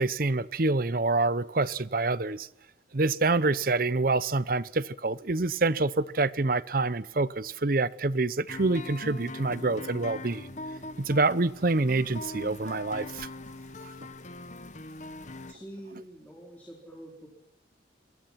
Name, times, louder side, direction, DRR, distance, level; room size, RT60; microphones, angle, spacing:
voice 1, 0.0-2.5 2.9-10.5 11.0-13.3, right 3 dB, 50° right, 0.8 m, -26 dB
sound 1, 8.5-15.5, left 2 dB, 40° left, 1.2 m, -42 dB
voice 2, 15.5-17.3, right 1 dB, 10° left, 4.2 m, -46 dB
27.0 x 23.0 x 5.9 m
head